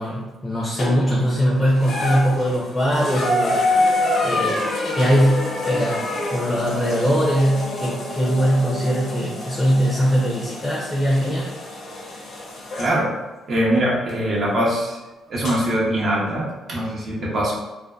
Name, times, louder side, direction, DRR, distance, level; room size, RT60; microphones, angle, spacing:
voice 1, 0.0-4.6 5.0-6.0 6.3-11.6, equal, 5° left, -4 dB, 0.5 m, -21 dB
sound 1, 0.8-1.2 1.7-12.9 14.1-14.2 15.4-15.5, left 2 dB, 65° left, 0.6 m, -26 dB
voice 2, 12.8-13.1 13.5-15.0 15.3-17.5, right 1 dB, 50° right, -4 dB, 0.7 m, -22 dB
2.5 x 2.2 x 2.2 m, 1.1 s
cardioid pair, 90°, 0 cm